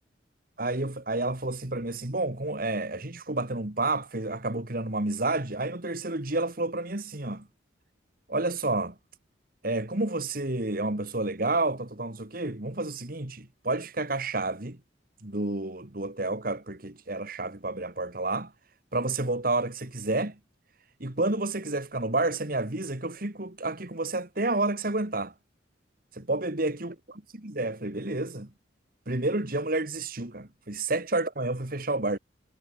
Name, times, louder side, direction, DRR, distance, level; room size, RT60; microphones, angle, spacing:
voice 1, 0.6-7.5 8.3-8.9 9.6-14.8 15.2-18.5 18.9-20.4 21.0-25.3 26.1-26.9 27.3-28.5 29.1-32.2, right 2 dB, 50° right, 2.2 m, -30 dB
head